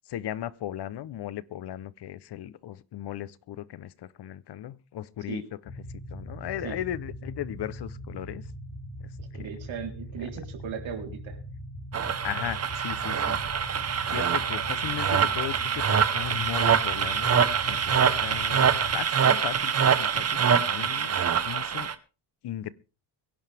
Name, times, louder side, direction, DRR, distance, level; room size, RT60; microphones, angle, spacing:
voice 1, 0.1-5.4 6.1-8.4 9.3-9.5 12.2-21.9 22.4-22.7, left 12 dB, 55° left, 0.8 m, -37 dB
sound 1, 5.7-18.9, left 1 dB, 35° left, 3.4 m, -41 dB
voice 2, 9.2-11.4, right 7 dB, 65° right, 3.8 m, -38 dB
sound 2, 11.9-21.9, right 7 dB, 30° right, 1.0 m, -25 dB
23.5 x 11.0 x 3.5 m
cardioid pair, 170°, 49 cm